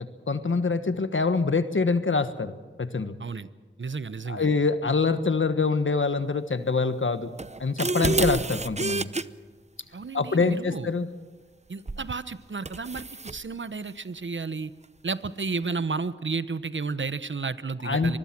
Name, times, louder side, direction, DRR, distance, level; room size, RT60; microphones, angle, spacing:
voice 1, 0.0-2.5 2.8-3.1 4.3-7.3 7.6-9.1 10.1-11.1 17.8-18.2, left 4 dB, 75° left, 11 dB, 1.4 m, -25 dB
voice 2, 3.8-4.5 9.9-10.9 11.7-14.7 15.0-18.2, right 4 dB, 70° right, 14 dB, 0.9 m, -32 dB
sound 1, 7.4-9.2 11.9-12.1 12.6-13.4, right 3 dB, 35° right, 0.7 m, -28 dB
25.0 x 20.5 x 6.1 m, 1.4 s
wide cardioid pair, 45°, 20 cm